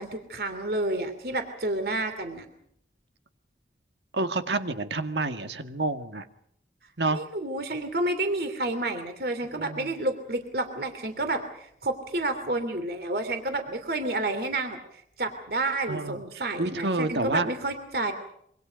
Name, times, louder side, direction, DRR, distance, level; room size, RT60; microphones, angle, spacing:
voice 1, 0.0-2.5 7.1-14.8 15.2-18.1, right 2 dB, 60° right, 8 dB, 2.9 m, -30 dB
voice 2, 4.1-6.3 7.0-7.2 9.5-9.9 15.9-16.2 16.6-17.5, right 3 dB, 80° right, 8 dB, 1.8 m, -28 dB
26.5 x 24.5 x 5.3 m, 0.70 s
head